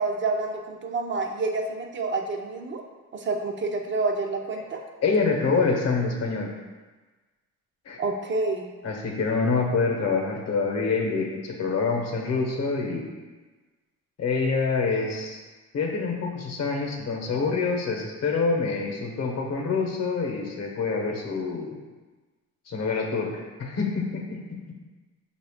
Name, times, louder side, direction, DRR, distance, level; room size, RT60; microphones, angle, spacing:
voice 1, 0.0-2.8 3.1-4.8 8.0-8.7, right 3 dB, 40° right, 3 dB, 0.5 m, -28 dB
voice 2, 5.0-6.5 7.9-8.0 8.8-13.1 14.2-15.4 15.7-21.8 22.7-24.7, left 4 dB, 60° left, 1 dB, 0.9 m, -26 dB
5.3 x 2.4 x 3.5 m, 1.3 s
cardioid pair, 90°, 30 cm